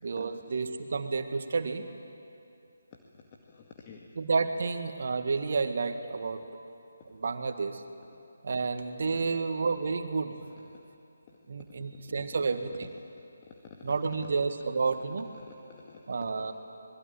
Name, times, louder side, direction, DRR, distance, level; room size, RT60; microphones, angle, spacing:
voice 1, 0.0-1.9 4.2-6.4 7.1-7.8 8.4-10.4 11.5-12.9 13.8-15.3 16.1-16.5, right 4 dB, 55° right, 7 dB, 2.0 m, -30 dB
voice 2, 3.5-4.1 9.1-9.4 10.4-10.9 11.3-11.4 12.2-12.3 13.2-13.3 13.8-13.9 15.4-16.5, left 5 dB, 30° left, 1 dB, 2.0 m, -52 dB
26.5 x 21.5 x 9.7 m, 2.6 s
figure-of-eight pair, 150°, 0 cm